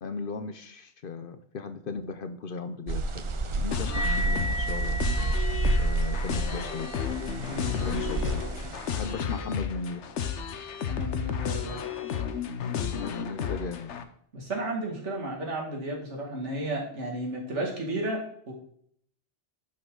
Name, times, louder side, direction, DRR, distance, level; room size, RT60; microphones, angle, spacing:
voice 1, 0.0-3.3 3.5-5.0 5.8-6.9 7.8-8.4 8.9-10.0 12.8-13.9, left 4 dB, 55° left, 10 dB, 0.8 m, -36 dB
sound 1, 2.9-9.1, right 3 dB, 40° right, 0.4 m, -30 dB
sound 2, 3.7-14.0, left 8 dB, 75° left, 1.1 m, -33 dB
sound 3, 3.9-10.8, equal, 25° left, 1.1 m, -38 dB
voice 2, 10.9-11.8 14.3-18.5, right 1 dB, 80° right, -2 dB, 2.6 m, -33 dB
11.0 x 5.8 x 3.8 m, 0.64 s
omnidirectional pair, 1.2 m